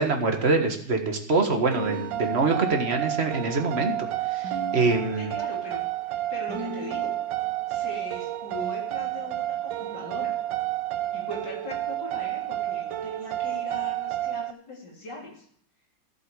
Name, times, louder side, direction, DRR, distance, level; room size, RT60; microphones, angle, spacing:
voice 1, 0.0-3.9 4.3-5.3, right 3 dB, 35° right, 4 dB, 1.7 m, -24 dB
sound 1, 1.7-14.5, right 14 dB, 85° right, 1.4 m, -31 dB
sound 2, 1.8-3.0 4.4-5.6 6.5-7.4 8.6-9.5, right 1 dB, 65° right, 2.0 m, -41 dB
voice 2, 5.2-5.8 6.0-7.1 7.7-10.4 11.1-15.5, left 1 dB, 65° left, -2 dB, 3.9 m, -40 dB
14.5 x 7.8 x 4.9 m, 0.64 s
omnidirectional pair, 2.0 m